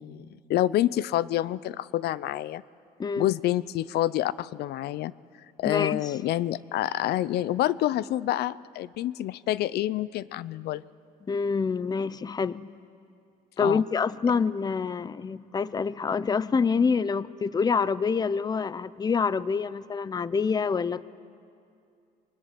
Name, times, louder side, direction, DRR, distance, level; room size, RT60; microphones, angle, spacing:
voice 1, 0.0-2.6 3.2-5.1 5.6-10.8 13.6-13.8, left 13 dB, 70° left, 19 dB, 0.6 m, -28 dB
voice 2, 5.6-6.1 11.3-12.8 13.6-21.1, left 5 dB, 25° left, 17 dB, 0.6 m, -26 dB
24.0 x 23.0 x 9.8 m, 2.4 s
cardioid pair, 110°, 17 cm